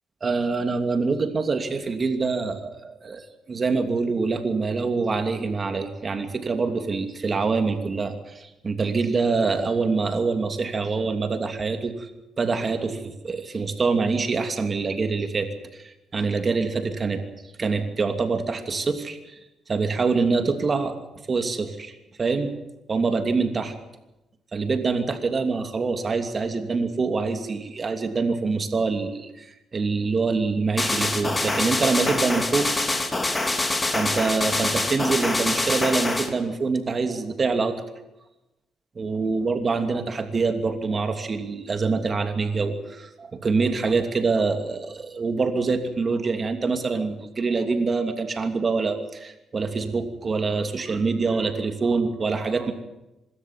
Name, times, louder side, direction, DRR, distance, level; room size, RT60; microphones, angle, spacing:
voice 1, 0.2-12.1 12.4-17.2 17.6-19.4 19.7-21.0 21.3-21.9 22.2-22.5 22.9-23.7 24.5-32.7 33.9-37.7 38.9-52.7, right 4 dB, 35° right, 6 dB, 2.9 m, -25 dB
sound 1, 30.8-36.3, left 2 dB, 20° left, 2.9 m, -25 dB
25.0 x 13.5 x 9.6 m, 0.99 s
cardioid pair, 90°, 0 cm